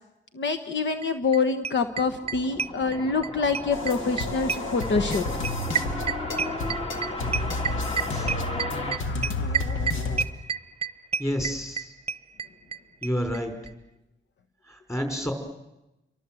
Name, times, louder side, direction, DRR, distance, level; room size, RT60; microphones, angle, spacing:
voice 1, 0.3-5.2, left 4 dB, 70° left, 8 dB, 1.3 m, -26 dB
sound 1, 1.0-1.1 1.3-1.4 1.6-3.3 3.5-12.8 13.0-13.1 13.3-13.4 13.7-13.8, right 6 dB, 30° right, 0.9 m, -29 dB
sound 2, 1.8-10.1, left 1 dB, 30° left, 2.4 m, -35 dB
sound 3, 3.7-10.2, left 3 dB, 85° left, 2.1 m, -31 dB
voice 2, 11.2-11.9 13.0-13.5 14.7-15.3, equal, 15° left, 5 dB, 5.3 m, -29 dB
29.0 x 24.0 x 7.8 m, 0.95 s
wide cardioid pair, 150°, 20 cm